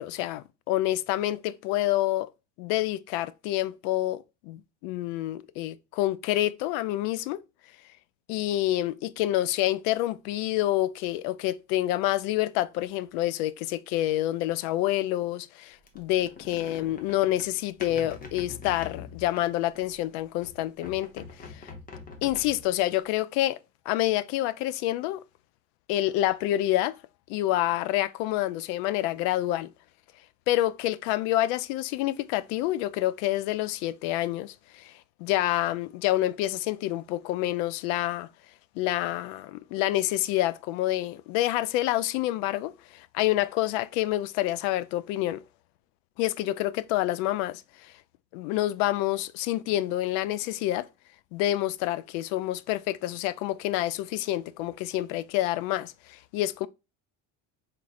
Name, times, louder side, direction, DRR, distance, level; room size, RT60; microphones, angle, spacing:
voice 1, 0.0-2.3 2.6-7.4 8.3-21.6 22.2-23.6 23.9-25.2 25.9-27.0 27.3-29.7 30.5-34.9 35.2-38.3 38.8-45.4 46.2-47.9 48.3-50.9 51.3-56.7, left 14 dB, 80° left, 0.5 m, -28 dB
sound 1, 15.9-20.0 20.4-22.8, left 5 dB, 20° left, 0.8 m, -44 dB
4.1 x 3.7 x 2.4 m
cardioid pair, 140°, 39 cm